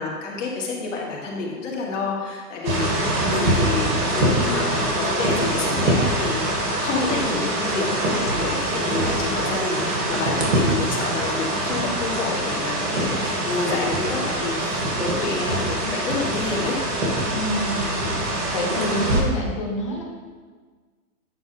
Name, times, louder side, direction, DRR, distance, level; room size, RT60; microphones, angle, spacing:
voice 1, 0.0-16.8, left 3 dB, 50° left, -2 dB, 1.7 m, -29 dB
sound 1, 2.6-19.2, right 1 dB, 85° right, 2.3 m, -24 dB
voice 2, 17.3-17.9 18.5-20.0, equal, 20° left, -1 dB, 0.5 m, -27 dB
8.3 x 3.5 x 5.5 m, 1.5 s
hypercardioid pair, 170°, 47 cm